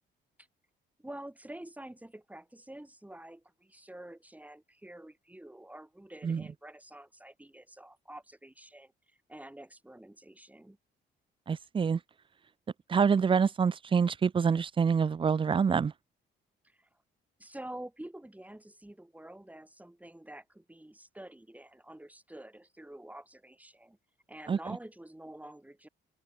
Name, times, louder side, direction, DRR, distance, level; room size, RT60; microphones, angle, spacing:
voice 1, 1.0-10.8 16.6-16.9 17.4-24.0 24.3-25.9, right 1 dB, 5° right, 5.1 m, -48 dB
voice 2, 11.5-12.0 12.9-15.9 24.5-24.6, right 6 dB, 25° right, 0.4 m, -26 dB
open air
cardioid pair, 90°, 20 cm